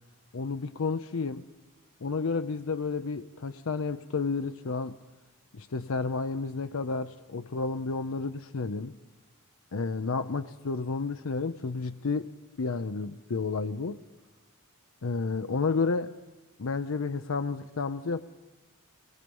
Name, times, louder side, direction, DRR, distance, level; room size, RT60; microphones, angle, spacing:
voice 1, 0.3-1.4 2.0-5.0 5.5-8.9 9.7-12.3 12.6-14.0 15.0-16.1 16.6-18.2, left 4 dB, 70° left, 9 dB, 0.6 m, -31 dB
22.5 x 21.0 x 5.4 m, 1.2 s
head